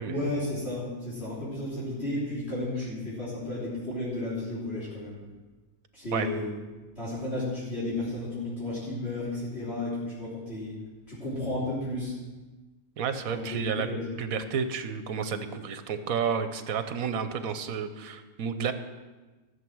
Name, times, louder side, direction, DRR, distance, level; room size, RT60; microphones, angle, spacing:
voice 1, 0.0-5.2 5.9-6.5 7.0-10.8 11.1-12.1 13.3-14.0, left 1 dB, 45° left, -9 dB, 3.7 m, -33 dB
voice 2, 13.0-13.9 14.2-18.7, right 6 dB, 75° right, 10 dB, 1.3 m, -31 dB
14.5 x 7.3 x 6.2 m, 1.2 s
omnidirectional pair, 1.5 m